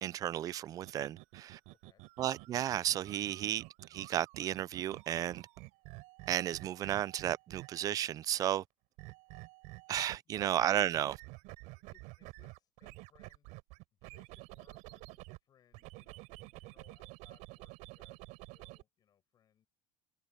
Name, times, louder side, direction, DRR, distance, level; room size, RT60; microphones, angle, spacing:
voice 1, 0.0-1.6 2.2-3.6 3.9-5.5 6.3-8.6 9.9-11.2, right 12 dB, 30° right, 0.3 m, -33 dB
sound 1, 0.8-8.0 9.0-10.7 10.9-15.4 15.7-18.8, right 24 dB, 65° right, 5.9 m, -51 dB
voice 2, 1.7-2.1 9.7-9.9 10.3-10.5 11.7-13.5 13.9-19.7, left 9 dB, 30° left, 7.3 m, -69 dB
cardioid pair, 175°, 13 cm